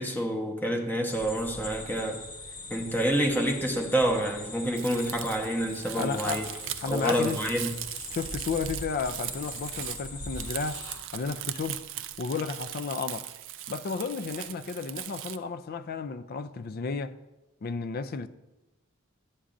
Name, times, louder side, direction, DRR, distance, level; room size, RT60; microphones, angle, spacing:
voice 1, 0.0-2.2 2.7-6.4 6.9-7.7, right 1 dB, 10° left, 0.9 m, -28 dB
sound 1, 1.1-11.0, left 2 dB, 80° left, 2.4 m, -41 dB
Crumpling crinkling, 4.8-15.4, right 13 dB, 60° right, 0.4 m, -39 dB
voice 2, 6.0-7.4 8.1-10.8 11.1-11.8 12.2-13.3 13.7-17.2 17.6-18.3, left 5 dB, 45° left, 0.4 m, -33 dB
11.5 x 8.3 x 2.5 m
head